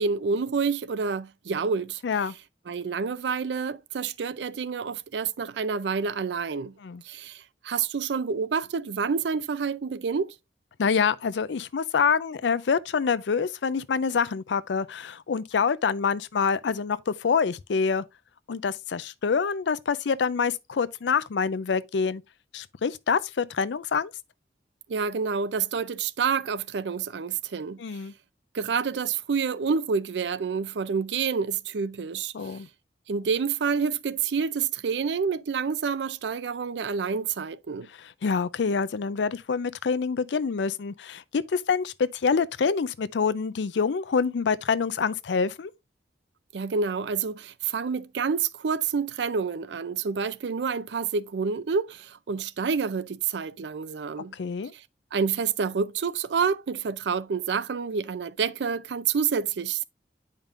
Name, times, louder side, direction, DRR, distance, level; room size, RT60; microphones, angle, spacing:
voice 1, 0.0-2.0 2.7-6.7 7.0-10.3 24.9-27.8 28.5-32.6 33.1-37.9 46.5-54.3 54.7-54.8 55.1-59.8, right 5 dB, 80° right, 0.5 m, -28 dB
voice 2, 2.0-2.3 6.8-7.0 10.8-18.0 18.5-22.2 22.5-24.1 27.8-28.1 32.3-32.7 38.0-45.7 54.3-54.7, left 5 dB, 80° left, 0.4 m, -26 dB
8.9 x 5.2 x 2.5 m
head